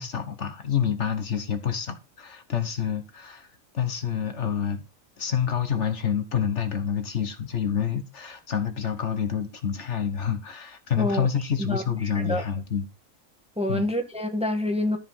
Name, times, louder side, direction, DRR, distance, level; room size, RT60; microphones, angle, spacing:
voice 1, 0.0-3.5 3.7-4.8 5.2-12.9 13.7-13.9, left 8 dB, 60° left, 1.5 m, -28 dB
voice 2, 11.0-11.3 11.6-12.4 13.6-15.0, left 1 dB, 5° right, 1.3 m, -27 dB
13.0 x 4.9 x 5.5 m
omnidirectional pair, 1.4 m